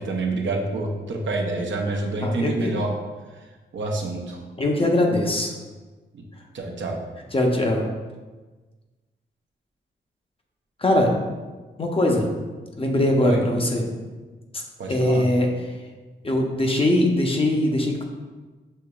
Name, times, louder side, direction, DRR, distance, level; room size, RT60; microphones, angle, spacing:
voice 1, 0.0-2.9 3.7-4.4 6.1-6.2 6.5-7.0 13.2-13.4 14.8-15.2, right 2 dB, 70° right, 1 dB, 0.7 m, -27 dB
voice 2, 2.2-2.7 4.6-5.5 7.3-7.9 10.8-11.1 11.8-12.3 12.7-13.9 14.5-14.6 14.9-15.5 16.2-18.0, left 1 dB, 30° left, 1 dB, 0.7 m, -21 dB
6.4 x 2.9 x 2.3 m, 1.3 s
cardioid pair, 80°, 20 cm